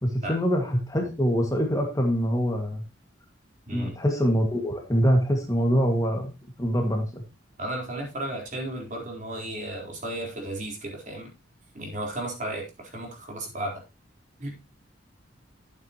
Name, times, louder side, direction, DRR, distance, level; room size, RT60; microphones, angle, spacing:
voice 1, 0.0-2.8 3.7-6.3 6.6-7.2, equal, 20° left, 2 dB, 2.0 m, -24 dB
voice 2, 7.6-11.3 11.7-13.7 14.4-14.5, right 1 dB, 40° right, 0 dB, 4.1 m, -34 dB
12.0 x 8.7 x 3.0 m, 0.25 s
head